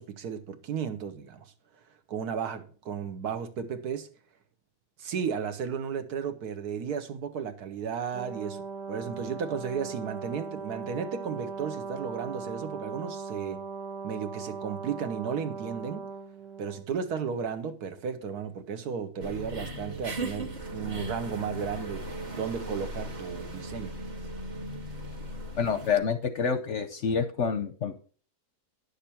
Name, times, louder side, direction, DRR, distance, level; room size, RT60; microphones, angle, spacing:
voice 1, 0.0-1.4 2.1-4.1 5.0-8.6 8.9-13.6 14.0-16.1 16.6-22.0 22.4-23.9, right 7 dB, 70° right, 1.5 m, -34 dB
Brass instrument, 8.1-16.9, right 5 dB, 55° right, 1.3 m, -39 dB
sound 1, 19.2-26.0, right 1 dB, 30° right, 1.1 m, -37 dB
voice 2, 25.6-28.0, left 6 dB, 60° left, 0.8 m, -28 dB
10.0 x 6.6 x 4.3 m
omnidirectional pair, 1.7 m